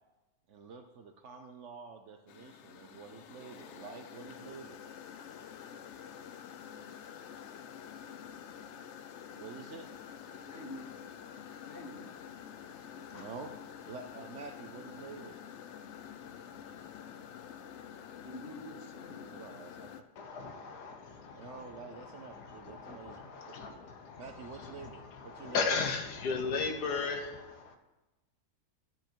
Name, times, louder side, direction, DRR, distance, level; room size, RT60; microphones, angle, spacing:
voice 1, 0.5-4.8 9.3-9.9 12.9-13.5 13.9-15.4 19.3-19.9 21.4-23.8 24.2-25.6, right 5 dB, 60° right, 6 dB, 0.9 m, -48 dB
sound 1, 2.3-20.0, left 8 dB, 65° left, 0.7 m, -48 dB
voice 2, 10.2-10.9 11.7-12.1 13.1-13.3 18.1-19.4 23.6-23.8, left 2 dB, 40° left, 5 dB, 1.2 m, -47 dB
voice 3, 20.1-27.8, left 4 dB, 90° left, 5 dB, 1.6 m, -37 dB
12.5 x 7.7 x 4.5 m, 1.1 s
omnidirectional pair, 1.7 m